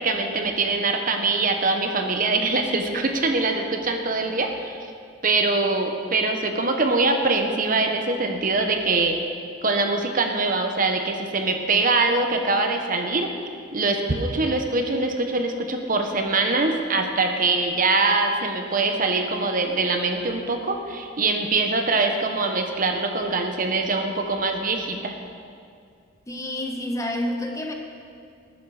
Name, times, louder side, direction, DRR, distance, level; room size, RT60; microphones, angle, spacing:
voice 1, 0.0-4.9 5.2-9.2 9.6-13.3 13.7-25.2, right 3 dB, 45° right, 4 dB, 1.1 m, -23 dB
voice 2, 26.3-27.7, left 1 dB, 15° left, 3 dB, 1.2 m, -28 dB
19.0 x 10.5 x 5.0 m, 2.3 s
head